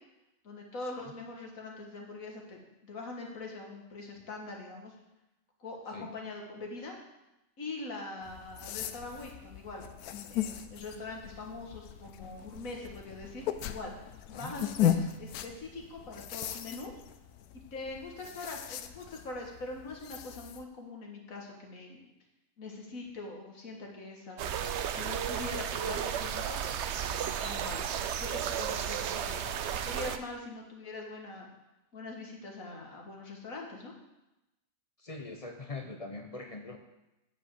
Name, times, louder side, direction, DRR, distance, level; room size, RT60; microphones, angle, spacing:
voice 1, 0.4-4.9 5.6-7.0 7.6-9.8 10.2-13.9 14.3-16.9 17.7-22.1 22.6-27.9 28.2-29.4 29.8-31.5 31.9-33.9, left 2 dB, 65° left, 1 dB, 2.0 m, -43 dB
sound 1, 8.2-20.6, left 10 dB, 85° left, 1.1 m, -37 dB
sound 2, 24.4-30.2, right 8 dB, 65° right, 0.7 m, -33 dB
voice 2, 29.1-29.6 35.0-36.8, left 3 dB, 35° left, 4 dB, 0.6 m, -43 dB
9.0 x 5.1 x 7.8 m, 0.94 s
omnidirectional pair, 1.6 m